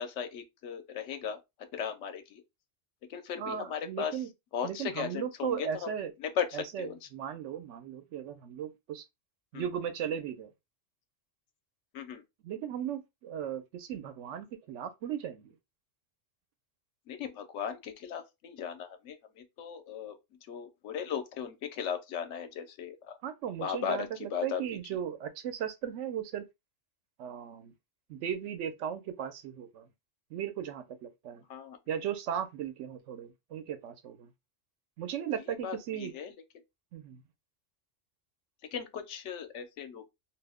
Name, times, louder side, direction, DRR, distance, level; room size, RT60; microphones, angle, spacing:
voice 1, 0.0-1.4 1.7-2.4 3.1-4.2 4.5-5.9 6.2-7.1 9.5-9.7 11.9-12.2 17.1-20.2 20.5-23.2 23.6-24.6 31.5-31.8 35.5-36.3 38.7-40.1, left 8 dB, 85° left, 0.9 m, -37 dB
voice 2, 3.4-4.3 4.6-6.1 6.5-9.0 9.5-10.5 12.4-15.5 23.2-26.5 27.2-27.7 28.1-29.9 30.3-31.4 31.9-34.3 35.0-36.1 36.9-37.2, right 9 dB, 85° right, 0.9 m, -37 dB
2.4 x 2.0 x 3.4 m
omnidirectional pair, 1.2 m